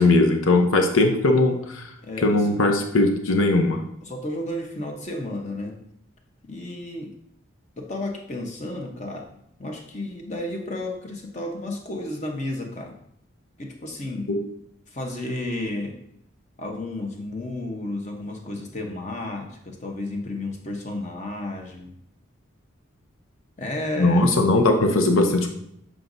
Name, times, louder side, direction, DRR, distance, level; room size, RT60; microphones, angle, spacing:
voice 1, 0.0-1.8 2.2-3.8 14.3-14.4 24.0-25.5, left 2 dB, 85° left, 4 dB, 0.8 m, -19 dB
voice 2, 2.0-2.6 4.0-5.8 6.5-7.1 7.8-9.3 9.6-12.9 13.6-14.4 14.9-16.0 16.6-21.9 23.6-24.4, left 1 dB, 35° left, 2 dB, 0.9 m, -32 dB
7.7 x 4.9 x 2.6 m, 0.73 s
head